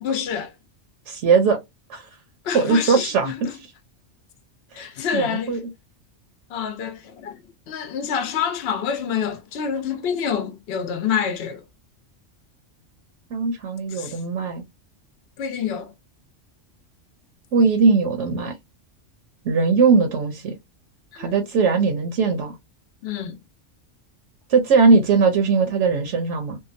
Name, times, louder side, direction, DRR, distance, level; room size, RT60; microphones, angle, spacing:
voice 1, 0.0-0.5 2.4-3.4 4.7-5.6 6.5-7.4 7.7-11.6 13.9-14.2 15.4-15.9 21.1-21.4 23.0-23.4, left 7 dB, 60° left, 0.8 m, -27 dB
voice 2, 1.1-1.6 1.9-2.1 2.5-3.5 5.1-5.6 13.3-14.6 17.5-18.5 19.4-20.5 21.2-22.5 24.5-26.6, right 4 dB, 75° right, 0.9 m, -19 dB
2.8 x 2.2 x 2.4 m
omnidirectional pair, 1.3 m